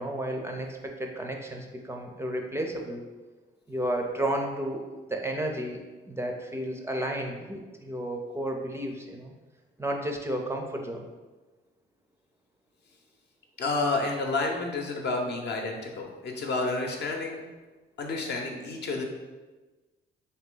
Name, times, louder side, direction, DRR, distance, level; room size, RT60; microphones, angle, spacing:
voice 1, 0.0-3.0 3.7-4.8 5.1-9.3 9.8-11.1, right 1 dB, 15° right, 2 dB, 0.4 m, -32 dB
voice 2, 13.6-17.4 18.0-19.0, left 3 dB, 60° left, 1 dB, 0.7 m, -30 dB
3.3 x 2.8 x 3.7 m, 1.2 s
cardioid pair, 90°, 20 cm